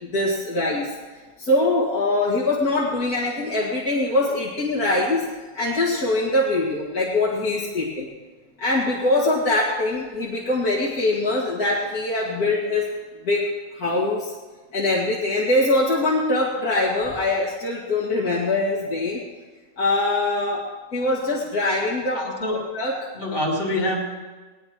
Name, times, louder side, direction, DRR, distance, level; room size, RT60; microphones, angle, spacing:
voice 1, 0.1-0.9 1.4-5.2 5.5-8.1 8.6-12.9 13.2-13.4 13.7-14.3 14.7-19.2 19.8-20.6 20.9-22.2 22.7-22.9, left 2 dB, 85° left, -6 dB, 2.7 m, -23 dB
voice 2, 22.1-22.6 23.1-24.0, left 1 dB, 65° left, -3 dB, 4.4 m, -25 dB
19.5 x 19.5 x 3.1 m, 1.3 s
omnidirectional pair, 1.5 m